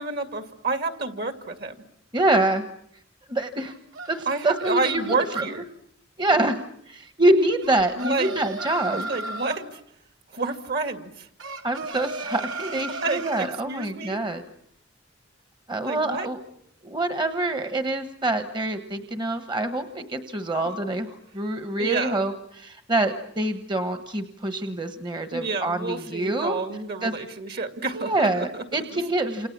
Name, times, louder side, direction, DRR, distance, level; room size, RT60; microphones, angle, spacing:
voice 1, 0.0-1.8 4.3-5.6 8.0-8.3 8.9-9.8 10.3-11.3 12.9-14.2 15.9-16.3 21.8-22.3 25.3-28.6 28.9-29.0, right 3 dB, 55° right, 8 dB, 2.3 m, -29 dB
voice 2, 2.1-2.7 3.3-3.7 4.1-5.4 6.2-9.1 11.6-14.4 15.7-16.4 16.8-26.6 27.0-27.1 27.9-29.5, right 2 dB, 25° right, 8 dB, 1.2 m, -26 dB
sound 1, 3.6-5.6 7.6-9.6 11.4-13.5, right 2 dB, 80° right, 3.6 m, -35 dB
29.0 x 28.0 x 7.3 m, 0.71 s
head